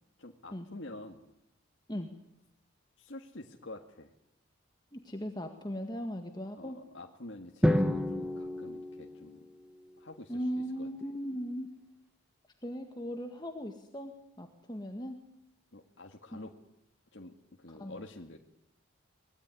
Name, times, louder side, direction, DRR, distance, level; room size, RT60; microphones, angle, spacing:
voice 1, 0.2-1.3 3.0-4.1 6.6-9.4 10.0-10.4 10.8-10.9 15.7-16.5 17.1-18.4, left 2 dB, 65° left, 2 dB, 1.9 m, -47 dB
voice 2, 4.9-6.8 10.3-11.7 12.6-15.2 17.7-18.0, equal, 20° left, 5 dB, 1.7 m, -38 dB
Drum, 7.6-9.8, equal, 5° right, 1.3 m, -30 dB
23.5 x 20.0 x 9.8 m, 0.81 s
head